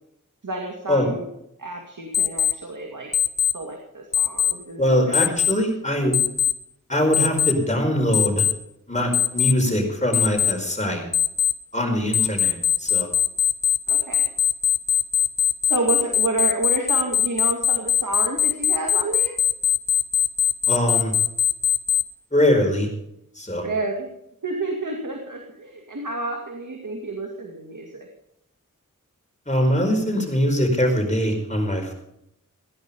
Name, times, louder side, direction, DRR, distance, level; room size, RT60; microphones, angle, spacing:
voice 1, 0.4-1.3 1.6-3.1 3.5-5.1 13.9-14.3 15.6-19.4 23.6-24.1 24.4-28.1, right 2 dB, 65° right, 2 dB, 2.4 m, -29 dB
Alarm, 2.1-2.5 3.1-3.5 4.1-4.5 5.1-5.5 6.1-6.5 7.1-7.5 8.1-8.5 9.1-9.5 10.1-10.5 11.1-11.5 12.1-22.0, left 10 dB, 55° left, 1.0 m, -20 dB
voice 2, 4.8-6.2 6.9-8.5 8.9-11.1 11.7-13.1 20.7-21.1 22.3-22.9 23.3-23.7 29.5-31.9, equal, 20° left, 2 dB, 5.0 m, -22 dB
16.5 x 10.5 x 5.4 m, 0.78 s
cardioid pair, 45°, 33 cm